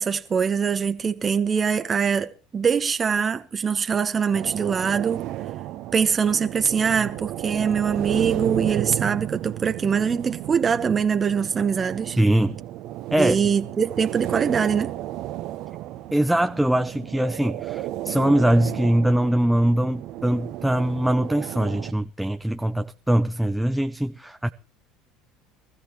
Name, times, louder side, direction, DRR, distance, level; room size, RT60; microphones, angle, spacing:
voice 1, 0.0-5.2 5.9-12.2 13.2-14.9, right 6 dB, 30° right, 0.9 m, -23 dB
sound 1, 4.3-21.9, right 14 dB, 60° right, 0.9 m, -33 dB
voice 2, 12.2-12.6 13.1-13.4 16.1-24.5, right 1 dB, 5° right, 0.6 m, -22 dB
23.0 x 14.5 x 3.0 m
hypercardioid pair, 75°, 0 cm